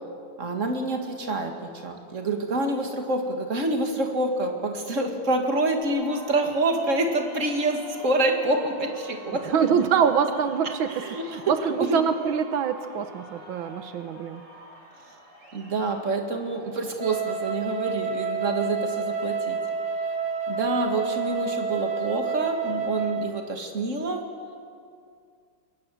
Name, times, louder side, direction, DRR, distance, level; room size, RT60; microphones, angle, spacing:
voice 1, 0.4-9.8 10.9-11.5 11.8-12.0 15.5-19.6 20.5-24.3, right 2 dB, 40° right, 4 dB, 2.5 m, -27 dB
sound 1, 5.8-23.6, right 1 dB, 65° right, 4.7 m, -48 dB
voice 2, 9.4-14.4, right 7 dB, 85° right, 9 dB, 1.8 m, -25 dB
Wind instrument woodwind instrument, 17.0-23.4, right 4 dB, 25° right, 1.2 m, -29 dB
26.5 x 22.0 x 7.8 m, 2.3 s
omnidirectional pair, 2.1 m